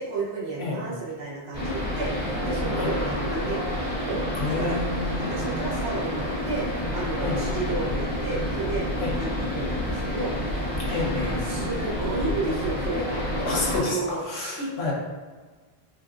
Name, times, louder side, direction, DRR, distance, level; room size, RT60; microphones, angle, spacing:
voice 1, 0.0-3.6 4.0-4.8 5.2-6.7 6.9-8.9 9.1-13.2 13.7-14.2 14.6-14.9, right 2 dB, 90° right, -5 dB, 1.1 m, -32 dB
sound 1, 1.5-13.8, left 1 dB, 55° left, 1.8 m, -29 dB
voice 2, 4.4-5.5 7.2-7.4 9.0-9.1 10.8-11.3 13.4-14.9, left 3 dB, 85° left, -5 dB, 1.1 m, -29 dB
4.6 x 2.4 x 2.4 m, 1.4 s
omnidirectional pair, 1.0 m